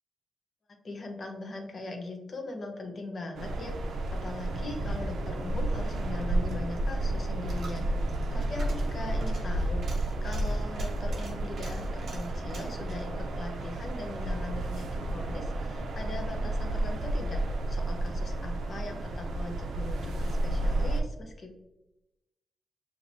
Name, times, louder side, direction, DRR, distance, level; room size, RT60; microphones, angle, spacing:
voice 1, 0.8-21.6, left 2 dB, 35° left, 3 dB, 0.8 m, -40 dB
sound 1, 3.3-21.0, right 1 dB, 80° right, 0.5 m, -31 dB
Coin (dropping), 6.2-14.4 14.7-14.8, right 2 dB, 60° right, 1.4 m, -49 dB
6.0 x 2.8 x 2.6 m, 0.93 s
wide cardioid pair, 170°, 0 cm